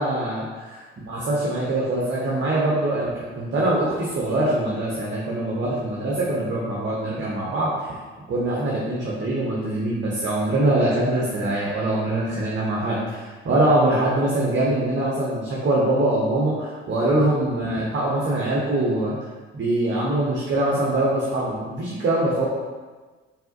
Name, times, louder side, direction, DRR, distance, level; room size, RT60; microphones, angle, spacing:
voice 1, 0.0-0.4 1.1-7.9 8.3-19.2 19.5-22.5, right 1 dB, 35° right, -5 dB, 0.9 m, -23 dB
4.6 x 3.5 x 2.7 m, 1.3 s
figure-of-eight pair, 40°, 32 cm